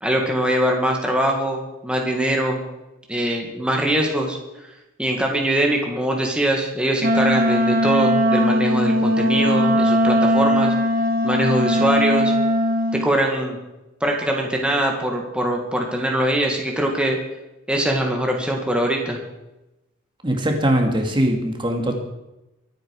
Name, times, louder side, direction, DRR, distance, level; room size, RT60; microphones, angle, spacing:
voice 1, 0.0-2.6 3.1-4.4 5.0-10.7 11.2-12.3 12.9-13.6 14.0-17.2 17.7-19.2, right 1 dB, 5° right, 0 dB, 2.0 m, -22 dB
Wind instrument woodwind instrument, 7.0-13.1, equal, 45° right, 1.5 m, -19 dB
voice 2, 20.2-22.0, right 1 dB, 25° right, 3 dB, 2.2 m, -21 dB
24.0 x 9.2 x 4.8 m, 0.96 s
head